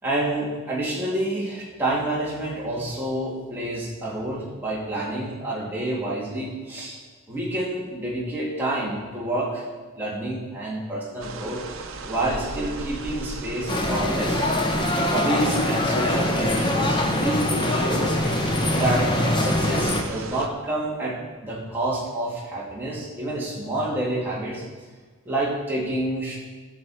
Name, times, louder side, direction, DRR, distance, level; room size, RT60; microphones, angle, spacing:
voice 1, 0.0-7.0 7.3-9.6 9.9-11.6 12.1-14.4 15.1-18.2 18.7-24.6 25.3-26.4, right 1 dB, 10° right, -6 dB, 2.7 m, -28 dB
sound 1, 11.2-20.5, right 3 dB, 65° right, 0.8 m, -37 dB
sound 2, 13.7-20.0, left 1 dB, 20° left, 0.9 m, -23 dB
14.5 x 6.3 x 4.5 m, 1.4 s
head